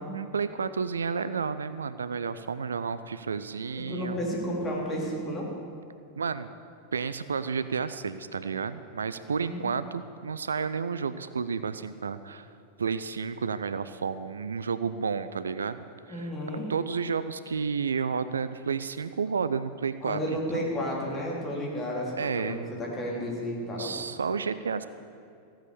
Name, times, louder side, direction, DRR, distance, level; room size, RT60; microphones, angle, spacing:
voice 1, 0.1-4.2 6.2-6.5 6.9-12.5 12.8-16.3 16.7-20.2 20.5-20.7 22.2-22.7 23.8-24.9, right 5 dB, 70° right, 13 dB, 0.4 m, -31 dB
voice 2, 3.9-5.5 9.4-9.6 16.1-16.7 20.0-24.0, equal, 20° left, -3 dB, 3.5 m, -32 dB
15.5 x 8.8 x 6.9 m, 2.4 s
figure-of-eight pair, 90°, 0 cm